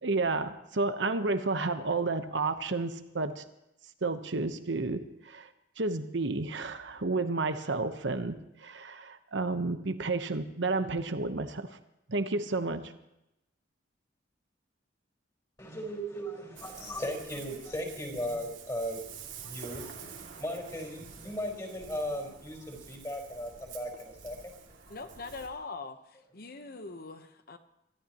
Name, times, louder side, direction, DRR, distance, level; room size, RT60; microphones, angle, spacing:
voice 1, 0.0-3.4 4.0-5.5 5.8-11.7 12.1-12.9, right 3 dB, 70° right, 9 dB, 1.0 m, -31 dB
voice 2, 15.6-19.0 19.4-19.9 20.3-24.5 24.9-25.0, equal, 20° left, 1 dB, 4.3 m, -37 dB
Ocean, 16.5-25.5, right 6 dB, 90° right, 2.5 m, -48 dB
voice 3, 24.9-27.6, left 3 dB, 55° left, 9 dB, 1.0 m, -42 dB
25.5 x 13.5 x 3.0 m, 0.89 s
head